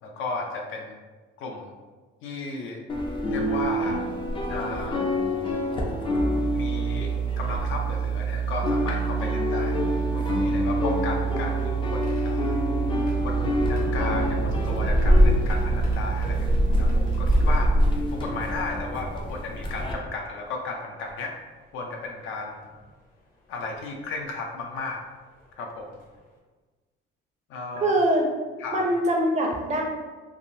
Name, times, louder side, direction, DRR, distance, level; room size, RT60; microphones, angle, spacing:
voice 1, 0.0-1.0 1.4-1.7 2.2-2.8 3.3-4.0 4.5-5.1 6.5-9.8 10.1-12.6 13.2-17.7 18.1-21.4 21.7-22.7 23.5-25.0 25.6-26.0 27.5-27.9 28.6-28.9, left 3 dB, 70° left, 1 dB, 0.6 m, -34 dB
sound 1, 2.9-8.2 8.5-19.9, left 1 dB, 25° left, 0.4 m, -26 dB
sound 2, 6.2-17.7, right 7 dB, 90° right, 0.7 m, -28 dB
sound 3, 11.3-20.2 21.1-21.2 22.6-22.8 23.6-23.8 25.4-25.5 25.9-26.2, equal, 40° left, 0.8 m, -35 dB
voice 2, 27.8-28.2 28.7-29.8, right 1 dB, 35° right, 0 dB, 0.5 m, -23 dB
3.5 x 2.5 x 2.6 m, 1.3 s
cardioid pair, 155°, 21 cm